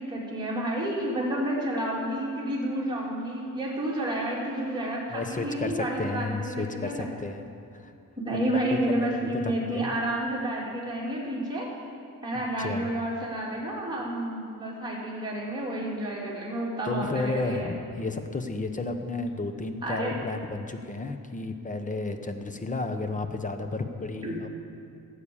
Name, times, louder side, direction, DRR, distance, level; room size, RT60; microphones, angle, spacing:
voice 1, 0.0-7.1 8.2-11.7 12.2-17.7 19.8-20.2 24.2-24.5, right 1 dB, 10° right, -6 dB, 3.2 m, -30 dB
voice 2, 5.1-7.4 7.7-7.9 8.3-9.9 12.6-12.9 16.8-24.5, left 3 dB, 20° left, 7 dB, 1.0 m, -32 dB
14.5 x 8.4 x 7.2 m, 2.5 s
cardioid pair, 110°, 36 cm